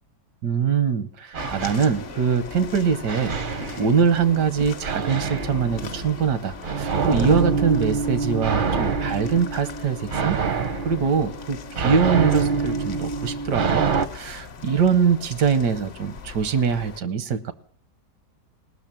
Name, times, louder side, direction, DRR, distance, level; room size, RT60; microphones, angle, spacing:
voice 1, 0.4-3.4 3.8-10.4 10.8-13.8 14.1-17.5, right 6 dB, 80° right, 14 dB, 1.5 m, -23 dB
sound 1, 1.3-2.5 3.1-4.3 4.8-14.1, right 5 dB, 50° right, 0.6 m, -26 dB
sound 2, 1.4-17.0, left 6 dB, 50° left, 0.7 m, -40 dB
18.5 x 6.2 x 8.8 m, 0.63 s
omnidirectional pair, 1.8 m